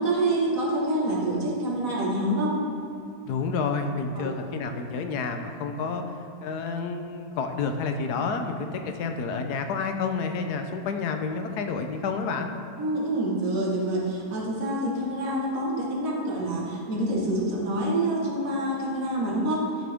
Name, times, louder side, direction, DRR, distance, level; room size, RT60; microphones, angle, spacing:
voice 1, 0.0-2.6 4.2-4.3 12.8-19.7, right 1 dB, 60° right, -3 dB, 1.9 m, -27 dB
voice 2, 3.2-6.0 6.4-12.5, left 4 dB, 85° left, 6 dB, 1.3 m, -29 dB
12.0 x 6.3 x 3.5 m, 2.7 s
omnidirectional pair, 1.7 m